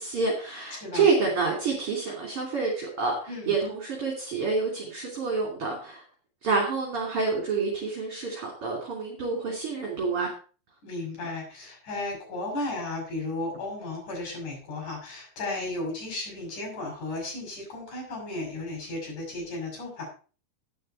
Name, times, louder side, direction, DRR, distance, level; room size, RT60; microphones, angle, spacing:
voice 1, 0.0-6.0 6.4-10.3, right 4 dB, 40° right, -1 dB, 3.5 m, -28 dB
voice 2, 10.8-20.1, left 2 dB, 60° left, -1 dB, 7.4 m, -34 dB
11.5 x 9.7 x 4.4 m, 0.38 s
omnidirectional pair, 4.1 m